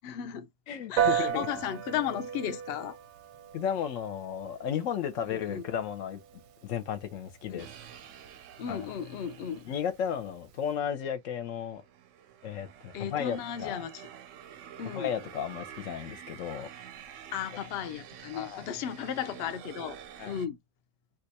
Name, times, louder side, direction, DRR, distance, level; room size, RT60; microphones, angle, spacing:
voice 1, 0.0-0.5 0.9-3.0 5.2-5.6 7.5-7.6 8.6-9.7 12.9-14.1 14.8-15.1 17.3-20.0 20.3-20.6, left 9 dB, 85° left, 0.5 m, -35 dB
voice 2, 0.7-1.5 3.5-6.2 6.6-7.7 8.7-8.9 9.7-11.8 12.4-13.8 14.9-16.7 18.3-18.7 20.2-20.4, left 8 dB, 65° left, 0.9 m, -34 dB
Piano, 1.0-10.7, right 9 dB, 85° right, 1.1 m, -36 dB
sound 1, 7.6-10.1 10.8-20.5, right 9 dB, 70° right, 0.8 m, -48 dB
2.7 x 2.4 x 4.0 m
omnidirectional pair, 1.6 m